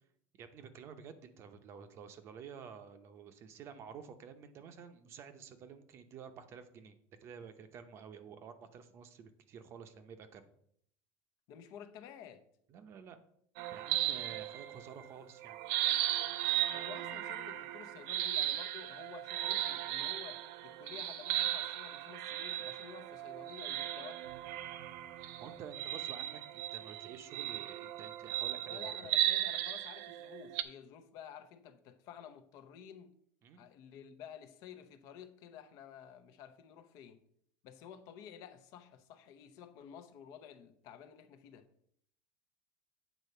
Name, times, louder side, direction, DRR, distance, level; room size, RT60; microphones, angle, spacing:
voice 1, 0.4-6.9 7.2-10.5 12.7-13.2 13.7-15.6 25.4-28.8 33.4-33.6, right 7 dB, 35° right, 0.8 m, -51 dB
voice 2, 11.5-12.5 16.7-24.3 28.7-33.2 33.6-37.2 37.6-41.7, left 8 dB, 55° left, 0.8 m, -52 dB
sound 1, 13.6-15.0 15.4-30.6, right 13 dB, 70° right, 0.6 m, -36 dB
8.3 x 4.1 x 6.7 m
cardioid pair, 155°, 7 cm